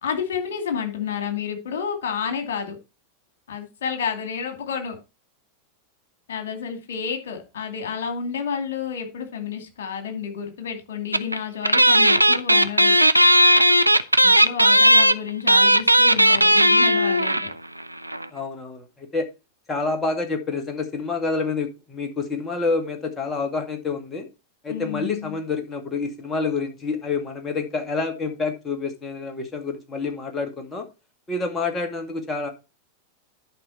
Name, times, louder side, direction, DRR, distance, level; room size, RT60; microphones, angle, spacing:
voice 1, 0.0-2.8 3.5-5.0 6.3-13.0 14.2-17.5 24.7-25.3, left 6 dB, 60° left, 6 dB, 2.5 m, -30 dB
sound 1, 11.1-11.4 11.6-17.5 17.8-17.9 18.1-18.2, right 1 dB, 90° right, 0.4 m, -16 dB
voice 2, 18.3-19.3 19.7-24.3 24.6-30.8 31.3-32.5, left 4 dB, 20° left, 5 dB, 2.0 m, -28 dB
11.5 x 5.2 x 4.2 m, 0.28 s
figure-of-eight pair, 90°, 0 cm